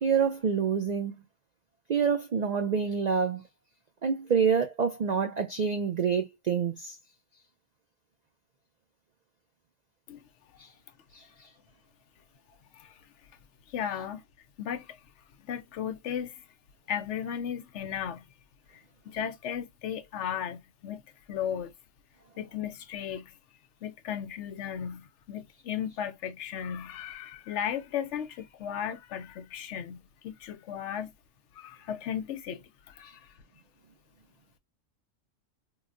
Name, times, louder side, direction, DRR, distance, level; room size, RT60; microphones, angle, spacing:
voice 1, 0.0-1.2 1.9-3.4 4.0-7.0 10.6-10.7 11.1-11.5, right 6 dB, 90° right, 0.3 m, -27 dB
voice 2, 13.7-14.2 14.6-15.0 15.5-16.3 16.9-18.3 18.7-21.0 21.3-21.7 22.4-23.3 23.8-31.1 31.6-33.2, left 9 dB, 70° left, 0.8 m, -35 dB
3.8 x 2.1 x 2.4 m
omnidirectional pair, 1.4 m